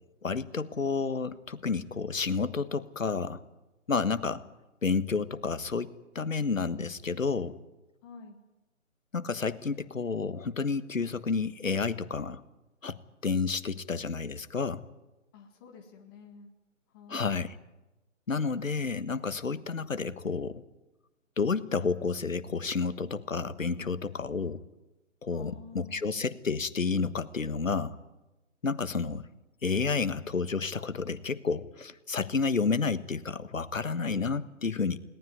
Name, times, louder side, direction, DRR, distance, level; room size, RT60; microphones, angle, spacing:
voice 1, 0.2-3.4 3.9-4.4 4.8-7.6 9.1-12.4 12.8-13.0 13.2-14.8 17.1-17.5 18.3-20.6 21.4-24.6 25.2-27.9 28.6-29.3 29.6-35.0, left 4 dB, 75° left, 14 dB, 1.4 m, -30 dB
voice 2, 8.0-8.4 15.3-16.5 16.9-17.3 25.3-26.4, left 5 dB, 15° left, 2 dB, 1.8 m, -50 dB
20.0 x 18.5 x 9.5 m, 1.1 s
figure-of-eight pair, 150°, 39 cm